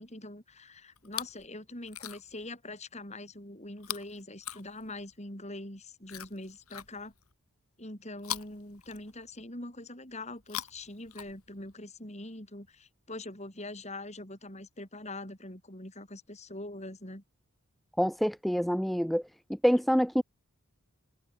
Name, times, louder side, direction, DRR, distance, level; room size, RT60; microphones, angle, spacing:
voice 1, 0.0-7.1 7.8-17.2, left 2 dB, 30° left, 6.4 m, -43 dB
Chewing mastication, 1.0-1.5 1.8-2.4 3.8-5.2 6.0-7.3 8.2-9.5 10.3-11.7 12.7-12.8, left 11 dB, 75° left, 4.0 m, -42 dB
voice 2, 18.0-19.2 19.5-20.2, equal, ahead, 0.4 m, -26 dB
head